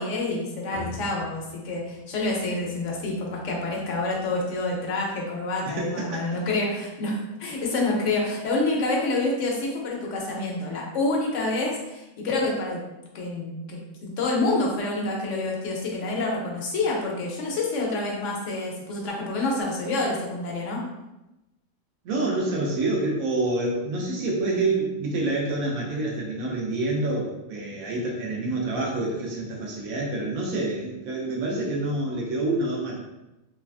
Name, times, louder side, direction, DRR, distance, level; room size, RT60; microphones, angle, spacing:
voice 1, 0.0-12.8 13.1-20.8, left 2 dB, 65° left, -2 dB, 0.9 m, -27 dB
sound 1, 0.7-5.4, left 1 dB, 35° right, 0.6 m, -46 dB
voice 2, 5.7-6.4 22.0-33.0, right 2 dB, 85° right, -2 dB, 1.1 m, -27 dB
3.2 x 2.3 x 2.4 m, 0.97 s
omnidirectional pair, 1.4 m